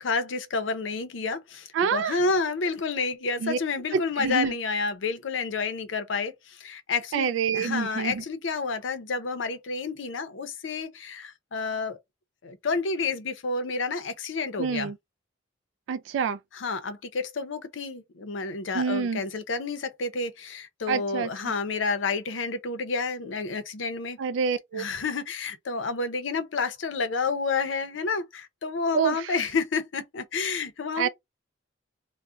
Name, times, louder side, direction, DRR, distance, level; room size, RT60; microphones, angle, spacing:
voice 1, 0.0-7.3 7.5-12.0 12.4-14.9 16.5-24.2 24.7-31.1, left 4 dB, 85° left, 0.6 m, -30 dB
voice 2, 1.7-2.2 3.4-3.6 3.9-4.5 7.1-8.2 14.6-14.9 15.9-16.4 18.7-19.2 20.9-21.3 24.2-24.8 28.9-29.1 31.0-31.1, right 6 dB, 80° right, 0.3 m, -26 dB
2.3 x 2.1 x 3.6 m
head